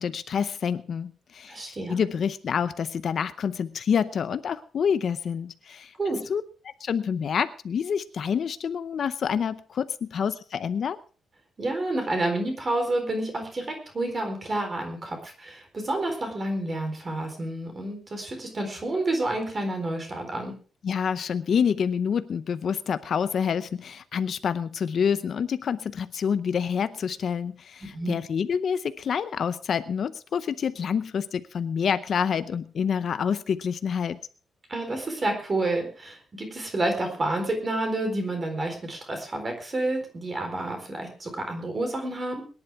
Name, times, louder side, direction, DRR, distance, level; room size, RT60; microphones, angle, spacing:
voice 1, 0.0-1.6 1.9-5.9 6.3-6.4 6.8-11.0 20.8-34.2, left 7 dB, 50° left, 12 dB, 0.7 m, -27 dB
voice 2, 1.5-1.9 6.0-6.2 11.6-20.5 27.9-28.2 34.7-42.4, right 2 dB, 25° right, 4 dB, 4.0 m, -29 dB
22.5 x 11.0 x 3.6 m, 0.37 s
wide cardioid pair, 165°, 0 cm